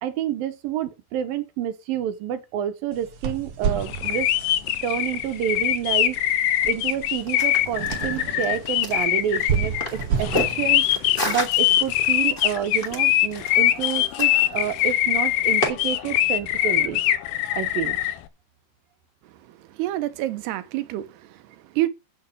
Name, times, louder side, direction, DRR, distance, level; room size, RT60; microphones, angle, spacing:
voice 1, 0.0-4.3 4.8-6.2 6.6-17.0 17.5-18.0, right 10 dB, 70° right, 2.7 m, -29 dB
sound 1, 2.9-12.3, right 7 dB, 50° right, 1.7 m, -32 dB
sound 2, 3.9-18.1, left 13 dB, 75° left, 2.7 m, -22 dB
sound 3, 7.2-15.7, left 1 dB, 15° left, 2.8 m, -33 dB
voice 2, 19.4-21.9, right 15 dB, 85° right, 3.0 m, -28 dB
8.6 x 7.4 x 6.2 m
omnidirectional pair, 4.6 m